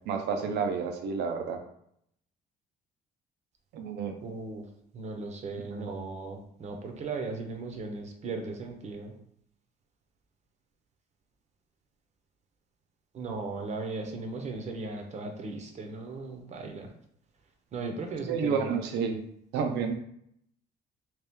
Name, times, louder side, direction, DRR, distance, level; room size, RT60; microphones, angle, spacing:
voice 1, 0.1-1.6 3.7-4.2 5.7-5.8 18.3-19.2 19.5-19.9, right 6 dB, 85° right, 4 dB, 0.6 m, -30 dB
voice 2, 4.2-4.6 4.9-9.1 13.1-16.9 17.7-18.8, right 3 dB, 45° right, 4 dB, 0.7 m, -37 dB
3.2 x 3.0 x 3.5 m, 0.72 s
cardioid pair, 110°, 17 cm